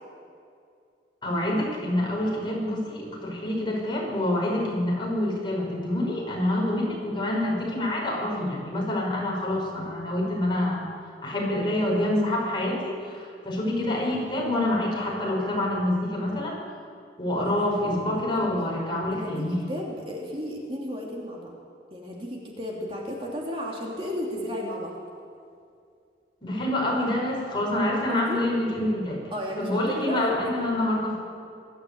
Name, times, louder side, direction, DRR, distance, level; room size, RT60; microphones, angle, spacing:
voice 1, 1.2-10.9 11.2-16.6 17.2-19.6 26.4-29.2 29.6-31.2, left 1 dB, 25° left, -2 dB, 5.7 m, -27 dB
voice 2, 17.3-17.7 18.0-18.2 18.6-18.7 19.1-21.5 21.9-24.9 28.3-28.4 29.3-30.7, left 1 dB, 30° right, -2 dB, 2.9 m, -33 dB
21.5 x 14.0 x 8.7 m, 2.3 s
head